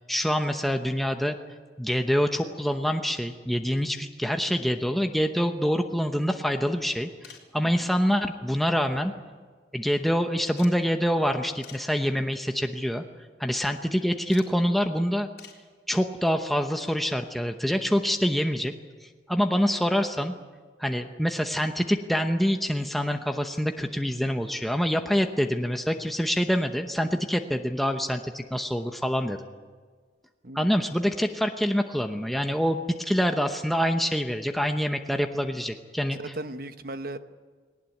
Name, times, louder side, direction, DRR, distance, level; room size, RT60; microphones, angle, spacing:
voice 1, 0.0-1.4 1.8-9.1 9.7-13.0 13.4-15.3 15.9-18.7 19.0-20.3 20.8-29.4 30.5-36.2, equal, ahead, 5 dB, 0.9 m, -26 dB
sound 1, 7.2-7.6 8.8-9.4 9.7-9.8 10.5-10.8 11.6-11.9 12.6-12.9 14.3-14.5 15.4-15.7 17.3-17.4 18.8-18.9 19.1-19.2, left 7 dB, 65° left, 3.7 m, -49 dB
voice 2, 36.1-37.2, right 2 dB, 55° right, 10 dB, 1.1 m, -37 dB
20.0 x 18.5 x 9.4 m, 1.5 s
head